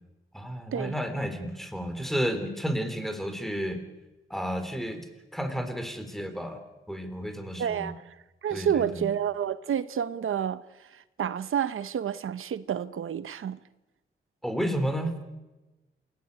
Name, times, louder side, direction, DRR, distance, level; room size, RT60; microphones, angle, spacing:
voice 1, 0.3-3.8 4.3-5.1 5.3-6.6 6.9-7.9 8.5-9.1 14.4-15.1, equal, ahead, 3.8 m, -31 dB
voice 2, 7.6-7.9 8.4-13.6, right 9 dB, 85° right, 0.9 m, -29 dB
27.5 x 16.5 x 9.7 m
wide cardioid pair, 115°, 21 cm